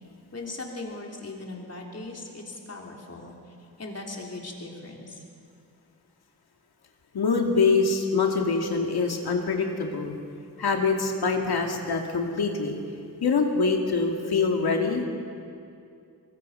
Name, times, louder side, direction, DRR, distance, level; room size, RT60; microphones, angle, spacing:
voice 1, 0.3-5.2, left 2 dB, 40° left, 0 dB, 3.4 m, -39 dB
voice 2, 7.1-10.2 10.6-12.8 13.2-15.0, left 4 dB, 85° left, 2 dB, 2.4 m, -24 dB
24.0 x 23.5 x 5.6 m, 2.4 s
wide cardioid pair, 135°, 37 cm